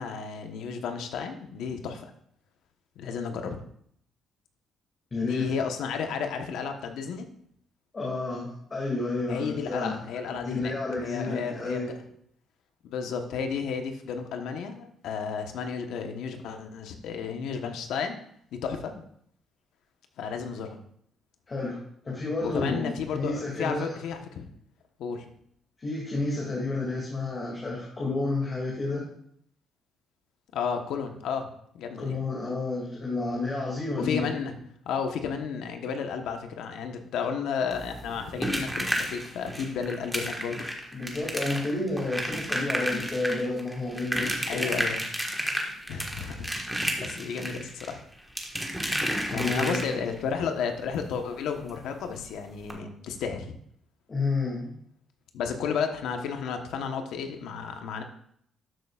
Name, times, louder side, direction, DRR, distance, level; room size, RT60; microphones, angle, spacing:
voice 1, 0.0-2.1 3.0-3.6 5.2-7.3 9.3-10.7 11.0-11.9 12.8-18.2 18.5-18.9 20.2-20.8 22.4-24.5 25.0-25.3 30.5-32.2 34.0-34.5 34.8-40.7 44.5-45.0 45.9-48.0 49.3-53.5 55.3-58.0, left 6 dB, 85° left, 6 dB, 1.1 m, -32 dB
voice 2, 5.1-5.5 7.9-10.0 10.2-12.1 21.5-21.8 22.0-23.9 25.8-29.0 32.0-34.2 40.9-44.7 49.3-49.9 54.1-54.7, left 2 dB, 35° left, -4 dB, 2.3 m, -31 dB
sound 1, 37.7-50.2 51.7-51.8 52.1-52.2 52.6-52.7, equal, 5° right, 1.5 m, -32 dB
12.5 x 6.8 x 2.4 m, 0.67 s
cardioid pair, 90°, 0 cm